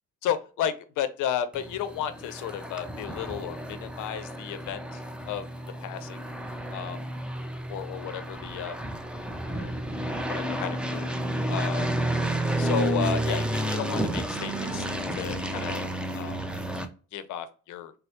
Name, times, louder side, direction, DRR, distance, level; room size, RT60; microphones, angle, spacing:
voice 1, 0.2-5.0 5.3-5.5 5.8-6.2 6.7-7.0 7.7-8.8 9.5-9.7 10.3-11.1 11.5-11.9 12.6-14.9 15.1-15.8 16.1-16.4 17.1-17.9, left 9 dB, 85° left, 12 dB, 0.5 m, -33 dB
sound 1, 1.5-16.8, right 1 dB, 5° right, 0.4 m, -31 dB
4.3 x 2.0 x 2.8 m, 0.37 s
cardioid pair, 90°, 30 cm